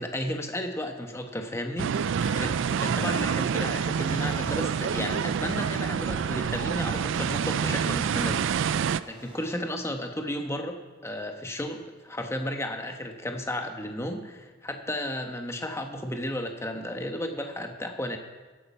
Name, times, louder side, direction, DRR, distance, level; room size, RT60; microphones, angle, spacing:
voice 1, 0.0-2.5 2.8-8.7 9.1-10.8 11.0-18.2, left 1 dB, 15° left, 4 dB, 1.2 m, -33 dB
sound 1, 1.8-9.0, right 7 dB, 65° right, 0.4 m, -27 dB
sound 2, 2.2-9.6, right 1 dB, 30° right, 2.7 m, -47 dB
15.5 x 8.7 x 5.5 m, 1.3 s
head